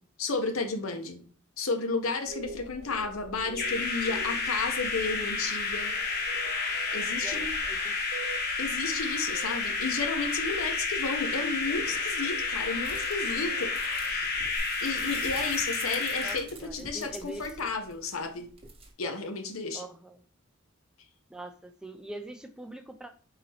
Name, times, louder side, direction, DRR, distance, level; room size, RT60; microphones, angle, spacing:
voice 1, 0.2-1.2 1.6-5.9 6.9-7.5 8.6-14.3 14.8-18.5 19.0-19.8, left 4 dB, 85° left, 6 dB, 0.8 m, -32 dB
sound 1, 2.3-14.6, right 2 dB, 80° right, 0.6 m, -46 dB
sound 2, 3.5-16.4, left 4 dB, 50° left, 0.8 m, -31 dB
voice 2, 7.2-8.1 16.2-17.7 19.7-20.2 21.3-23.1, right 1 dB, 5° right, 7 dB, 0.3 m, -43 dB
sound 3, 12.8-18.9, right 3 dB, 30° right, 0.8 m, -47 dB
4.1 x 4.0 x 2.7 m, 0.43 s
head